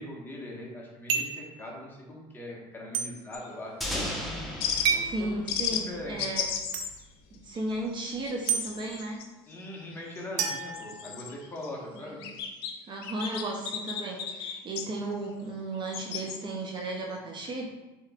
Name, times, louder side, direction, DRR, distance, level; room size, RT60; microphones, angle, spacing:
voice 1, 0.0-4.1 4.9-5.3 5.7-6.2 9.5-12.2, left 1 dB, 15° left, -3 dB, 1.4 m, -41 dB
sound 1, 1.1-1.5 2.9-3.1 4.8-5.2 6.7-6.9 8.5-8.6 10.4-11.5, right 6 dB, 75° right, 0.7 m, -29 dB
sound 2, 3.3-3.5 4.6-4.9 5.5-5.9 6.2-7.0 7.3-7.6 8.0-9.3 10.0-11.7 12.0-12.7 13.0-14.9 15.8-16.4 16.8-16.9, left 8 dB, 85° left, 0.6 m, -34 dB
sound 3, 3.8-6.6, equal, ahead, 1.0 m, -36 dB
voice 2, 5.1-6.4 7.3-9.2 12.0-12.3 12.9-17.7, right 2 dB, 35° right, -1 dB, 0.7 m, -35 dB
6.5 x 3.1 x 2.4 m, 1.1 s
supercardioid pair, 100°, 13 cm